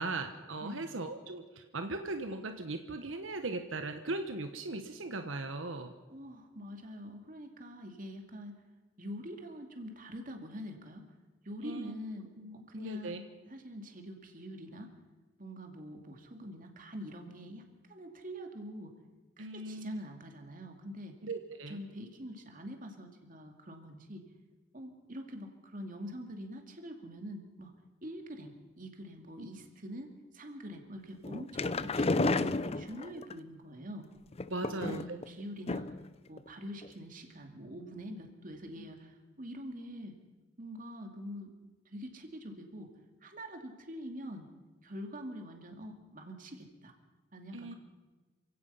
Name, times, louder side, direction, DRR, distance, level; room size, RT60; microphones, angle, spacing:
voice 1, 0.0-5.9 11.6-11.9 12.4-13.2 19.4-20.0 21.2-21.8 29.4-29.5 34.5-35.2 38.8-38.9 47.5-47.7, right 2 dB, 85° right, 7 dB, 1.3 m, -38 dB
voice 2, 0.6-1.0 6.1-8.6 9.0-11.1 11.4-14.9 15.4-18.9 19.4-21.1 21.7-24.2 24.7-27.7 28.0-34.1 34.6-35.9 36.3-40.1 40.6-41.5 41.9-42.9 43.2-44.5 44.8-46.9 47.3-47.8, equal, 45° right, 4 dB, 2.6 m, -45 dB
sound 1, 31.2-33.3 34.3-35.2 35.7-36.1 36.4-36.5 36.8-36.9, left 3 dB, 30° left, 0.5 m, -32 dB
27.5 x 16.5 x 5.7 m, 1.2 s
head